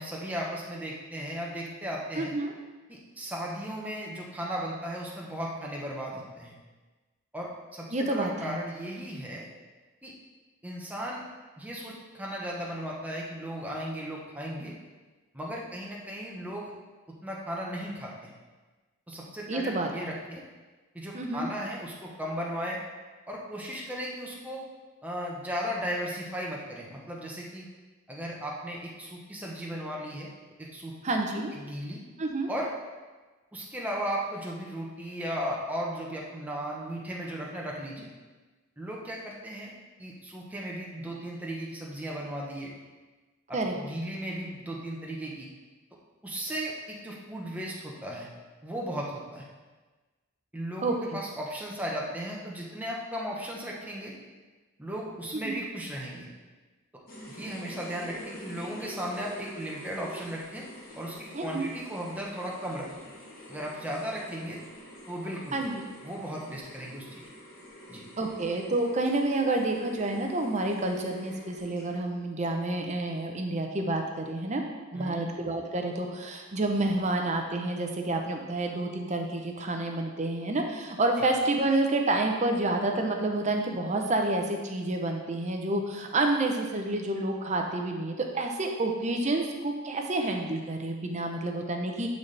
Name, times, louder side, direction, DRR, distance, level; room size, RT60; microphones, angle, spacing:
voice 1, 0.0-2.3 2.9-6.5 7.3-9.5 10.0-10.1 10.6-11.2 11.6-14.7 15.3-16.7 17.2-18.3 19.1-20.4 20.9-22.8 23.3-24.6 25.0-27.7 28.1-30.3 30.6-30.9 31.5-32.0 32.5-32.7 33.5-38.1 38.8-39.7 40.0-42.7 43.5-45.5 46.2-48.3 48.6-49.5 50.5-54.1 54.8-56.3 57.3-60.7 61.0-62.9 63.5-64.6 65.1-65.6 66.0-67.2 67.9-68.0 74.9-75.2 81.2-81.3, equal, 5° right, -3 dB, 1.0 m, -36 dB
voice 2, 2.2-2.5 7.9-8.6 19.5-20.1 21.1-21.5 31.0-31.5 32.2-32.5 43.5-43.7 50.8-50.9 55.4-55.6 61.3-61.7 65.5-65.8 68.2-74.6 74.9-92.1, right 2 dB, 35° right, 3 dB, 0.7 m, -29 dB
sound 1, 57.1-72.2, equal, 40° left, 1.6 m, -47 dB
11.0 x 4.2 x 3.4 m, 1.3 s
head